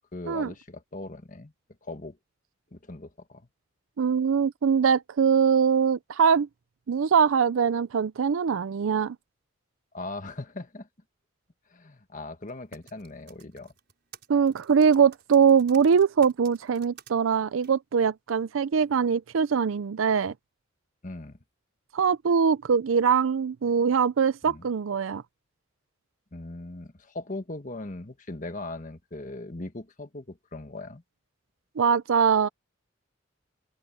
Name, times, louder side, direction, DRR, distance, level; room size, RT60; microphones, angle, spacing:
voice 1, 0.0-1.5 1.8-2.2 2.7-3.4 9.9-10.9 11.7-13.7 21.0-21.4 24.5-24.6 26.3-31.0, left 2 dB, 40° left, 1.6 m, -39 dB
voice 2, 4.0-6.5 6.9-9.2 14.3-20.3 21.9-25.2 31.8-32.5, right 6 dB, 85° right, 0.5 m, -22 dB
Typing, 12.5-17.1 17.6-17.7, right 8 dB, 55° right, 6.8 m, -51 dB
open air
head